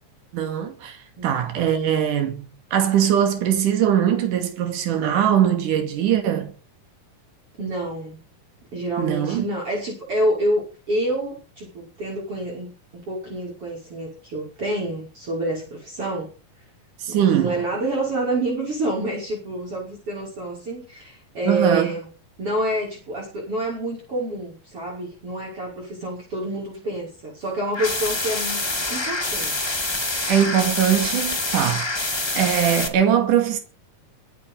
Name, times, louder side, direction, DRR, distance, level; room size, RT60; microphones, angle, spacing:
voice 1, 0.3-6.5 9.0-9.5 17.0-17.6 21.5-22.0 30.3-32.0 32.4-33.6, right 9 dB, 65° right, 3.8 m, -21 dB
voice 2, 7.6-8.2 8.7-16.3 17.1-22.1 22.4-29.7, right 1 dB, 40° right, 6.7 m, -28 dB
sound 1, 27.7-32.9, left 2 dB, 10° left, 1.5 m, -26 dB
23.0 x 8.9 x 5.6 m
omnidirectional pair, 3.9 m